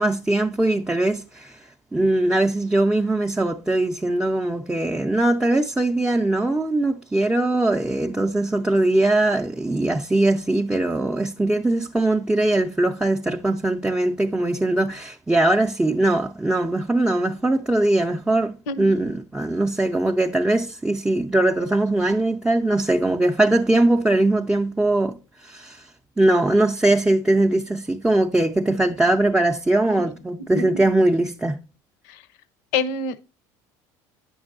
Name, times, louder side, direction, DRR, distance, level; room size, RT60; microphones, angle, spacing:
voice 1, 0.0-1.6 1.9-25.9 26.2-31.6, right 2 dB, 10° right, 0.5 m, -21 dB
voice 2, 32.7-33.2, left 4 dB, 85° left, 0.7 m, -26 dB
8.7 x 6.1 x 2.5 m
supercardioid pair, 105°, 10 cm